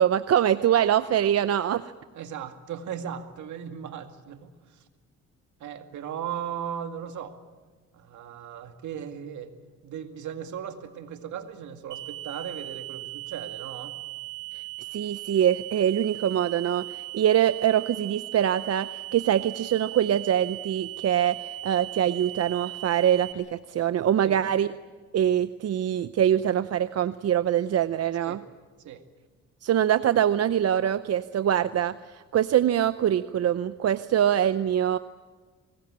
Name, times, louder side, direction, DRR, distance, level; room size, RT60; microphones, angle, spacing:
voice 1, 0.0-1.9 14.5-14.6 14.9-24.7 25.1-28.4 29.6-35.0, right 10 dB, 55° right, 13 dB, 0.7 m, -24 dB
voice 2, 2.1-4.8 5.6-7.4 7.9-9.5 9.8-14.0 24.2-24.4 28.2-28.4 28.8-29.0, right 8 dB, 75° right, 6 dB, 2.2 m, -37 dB
sound 1, 11.9-23.3, right 18 dB, 90° right, 2.1 m, -38 dB
24.5 x 20.0 x 8.7 m, 1.4 s
cardioid pair, 90°, 30 cm